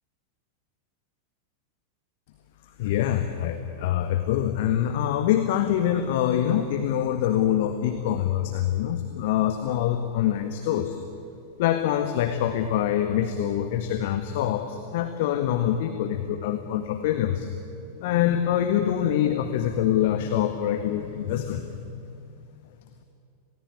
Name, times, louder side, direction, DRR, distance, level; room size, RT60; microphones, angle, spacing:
voice 1, 2.8-11.0 11.6-17.5 18.0-21.8, left 10 dB, 50° left, 6 dB, 1.6 m, -25 dB
27.0 x 18.5 x 9.9 m, 2.7 s
figure-of-eight pair, 90°, 0 cm